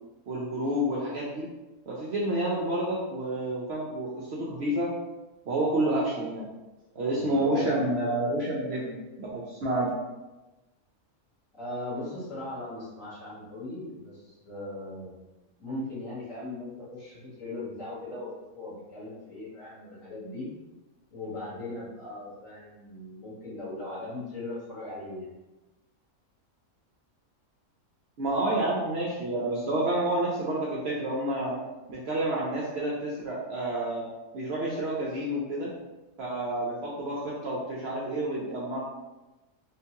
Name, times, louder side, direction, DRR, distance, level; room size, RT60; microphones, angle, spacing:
voice 1, 0.3-1.5 1.9-4.9 5.5-6.5 6.9-9.9 28.2-31.5 31.9-34.0 34.3-35.7 36.2-38.8, right 1 dB, 60° right, -5 dB, 0.7 m, -29 dB
voice 2, 7.1-7.8 11.5-15.2 15.6-20.5 21.1-25.3, left 2 dB, 65° left, -9 dB, 1.9 m, -38 dB
3.7 x 2.3 x 2.8 m, 1.1 s
omnidirectional pair, 1.5 m